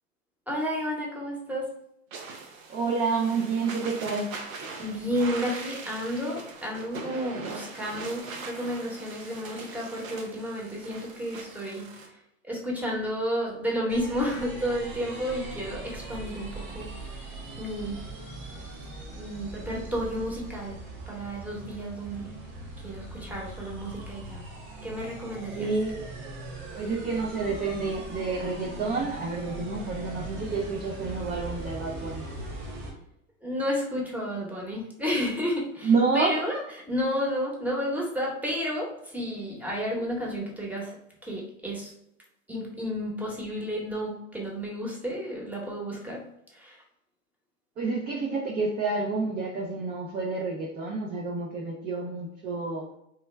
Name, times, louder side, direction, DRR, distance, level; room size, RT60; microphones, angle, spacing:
voice 1, 0.5-1.7 4.8-11.9 12.5-16.9 17.6-18.0 19.1-20.8 21.1-22.3 22.8-24.4 24.8-25.7 33.4-36.6 36.9-41.0 41.2-41.9 42.5-46.2 46.5-46.8, equal, 5° right, -2 dB, 1.0 m, -31 dB
sound 1, 2.1-12.1, right 4 dB, 85° right, 0.7 m, -41 dB
voice 2, 2.7-4.3 25.5-26.0 26.7-32.3 35.8-36.4 47.8-52.9, right 4 dB, 25° right, 0 dB, 0.4 m, -29 dB
sound 2, 13.9-32.9, right 2 dB, 55° right, 1.4 m, -40 dB
3.3 x 2.2 x 3.2 m, 0.78 s
hypercardioid pair, 95°, 40 cm